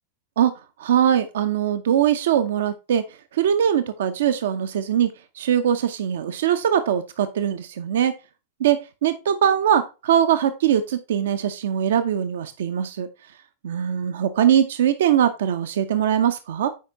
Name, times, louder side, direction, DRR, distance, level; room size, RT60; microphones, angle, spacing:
voice 1, 0.8-3.0 3.3-5.1 5.4-8.1 8.6-13.1 13.6-16.7, right 9 dB, 60° right, 10 dB, 0.7 m, -21 dB
9.4 x 5.1 x 3.4 m, 0.28 s
figure-of-eight pair, 90°, 0 cm